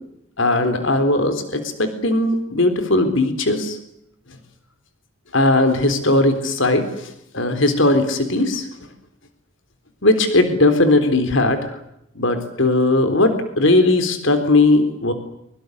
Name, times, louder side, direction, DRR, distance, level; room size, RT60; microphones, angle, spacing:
voice 1, 0.4-3.8 5.3-8.7 10.0-11.6 12.2-15.1, left 2 dB, 70° left, 8 dB, 3.8 m, -18 dB
24.0 x 23.5 x 8.1 m, 0.78 s
head